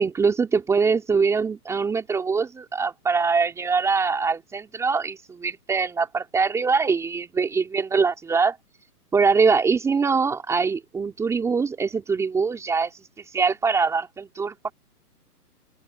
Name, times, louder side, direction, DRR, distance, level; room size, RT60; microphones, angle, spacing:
voice 1, 0.0-8.6 9.1-12.9 13.3-14.7, right 5 dB, 5° right, 3.5 m, -23 dB
open air
hypercardioid pair, 165°, 47 cm